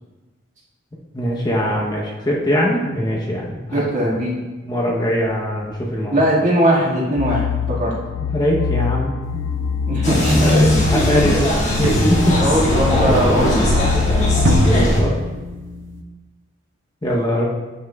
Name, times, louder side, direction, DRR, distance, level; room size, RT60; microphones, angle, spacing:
voice 1, 1.1-3.8 4.6-6.2 8.2-9.4 10.4-12.4 14.7-15.1 17.0-17.4, equal, 20° left, -3 dB, 0.7 m, -21 dB
voice 2, 3.7-4.4 6.1-7.9 9.9-10.5 12.3-13.8, equal, 40° right, -5 dB, 1.7 m, -19 dB
sound 1, 7.2-14.9, left 6 dB, 75° left, 0.3 m, -25 dB
sound 2, 9.2-16.0, right 1 dB, 65° right, 0.6 m, -26 dB
sound 3, 10.0-15.0, equal, 35° left, 1.3 m, -18 dB
9.0 x 5.7 x 2.2 m, 1.2 s
head